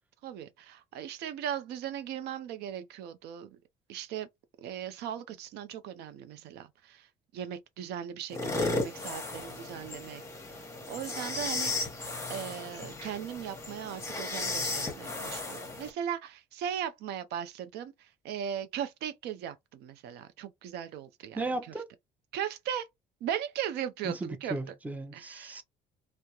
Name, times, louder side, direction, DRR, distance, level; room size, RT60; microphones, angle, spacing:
voice 1, 0.2-3.6 3.9-4.3 4.6-7.1 7.3-10.2 10.9-11.7 12.3-21.5 22.3-22.9 23.2-24.7 25.1-25.6, right 9 dB, 75° right, 0.4 m, -38 dB
sound 1, 8.3-15.9, left 3 dB, 15° left, 0.9 m, -35 dB
voice 2, 21.3-21.9 24.0-25.6, right 2 dB, 10° right, 0.5 m, -36 dB
2.2 x 2.0 x 2.8 m
cardioid pair, 110°, 17 cm